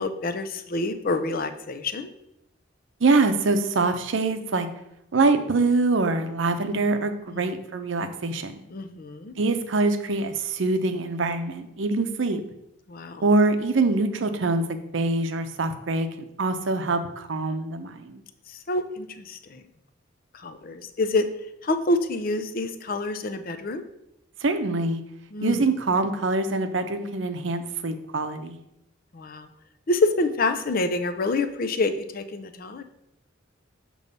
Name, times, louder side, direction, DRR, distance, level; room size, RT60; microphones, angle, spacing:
voice 1, 0.0-2.1 7.3-7.5 8.7-9.3 12.9-13.2 18.7-19.6 20.4-21.3 21.6-23.8 25.3-25.6 29.1-29.5 29.9-32.8, left 2 dB, 45° left, 9 dB, 0.5 m, -27 dB
voice 2, 3.0-4.7 5.1-8.5 9.4-12.4 13.2-18.2 24.4-25.0 25.4-28.6, right 3 dB, 70° right, 9 dB, 0.6 m, -24 dB
6.7 x 3.1 x 5.3 m, 0.82 s
head